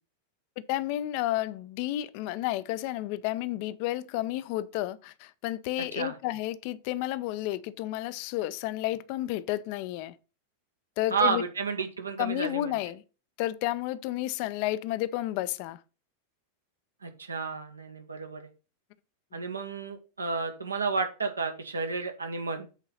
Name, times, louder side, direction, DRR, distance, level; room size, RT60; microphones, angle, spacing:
voice 1, 0.7-10.1 11.0-11.4 12.2-13.0 13.4-15.8 19.3-19.4, left 15 dB, 45° left, 0.5 m, -31 dB
voice 2, 11.1-12.8 17.0-18.5 19.3-22.7, right 4 dB, 75° right, 1.3 m, -31 dB
8.2 x 3.9 x 5.5 m
figure-of-eight pair, 90°, 0 cm